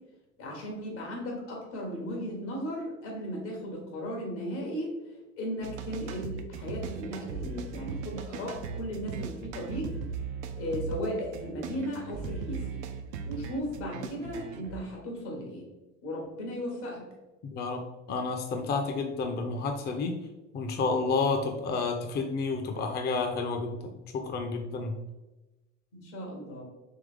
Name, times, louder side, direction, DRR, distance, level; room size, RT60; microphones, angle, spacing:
voice 1, 0.4-4.9 5.4-10.0 10.6-12.7 13.2-15.7 16.0-17.0 25.9-26.6, equal, 80° left, 0 dB, 1.5 m, -36 dB
sound 1, 5.6-14.8, right 6 dB, 80° right, 0.5 m, -38 dB
voice 2, 17.5-17.8 18.1-20.1 20.5-24.9, left 4 dB, 30° left, 4 dB, 0.5 m, -30 dB
3.6 x 3.1 x 3.4 m, 1.1 s
hypercardioid pair, 70°, 35 cm